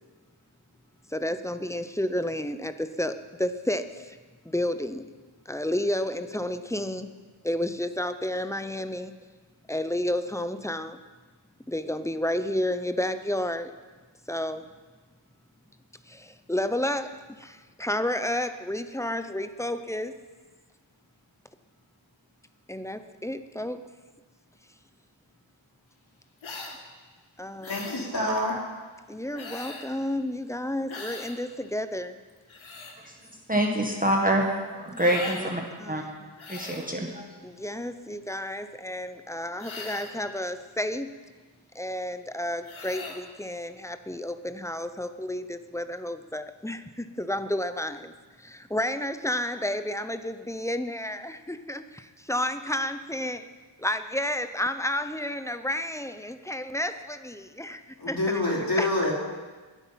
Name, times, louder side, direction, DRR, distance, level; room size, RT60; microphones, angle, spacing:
voice 1, 1.1-4.2 4.4-5.1 5.5-7.1 7.4-9.1 9.7-11.0 11.7-13.7 14.3-14.6 16.1-20.1 22.7-23.8 27.4-27.7 29.1-32.2 35.8-36.3 37.4-41.1 41.7-48.1 48.4-53.5 53.8-57.8 58.1-58.4 58.8-58.9, left 1 dB, 5° left, 10 dB, 0.6 m, -31 dB
sound 1, 26.4-26.8 27.6-28.1 29.3-29.9 30.9-31.4 32.3-33.0 35.0-35.5 36.4-36.9 39.6-40.2 42.6-43.2, left 3 dB, 70° left, 2.0 m, -40 dB
voice 2, 27.7-28.7 58.0-59.1, left 1 dB, 45° left, -5 dB, 4.1 m, -27 dB
voice 3, 33.5-35.6 35.9-36.0 36.5-37.3, right 1 dB, 15° right, 0 dB, 1.6 m, -26 dB
21.5 x 8.3 x 5.7 m, 1.3 s
wide cardioid pair, 130°, 49 cm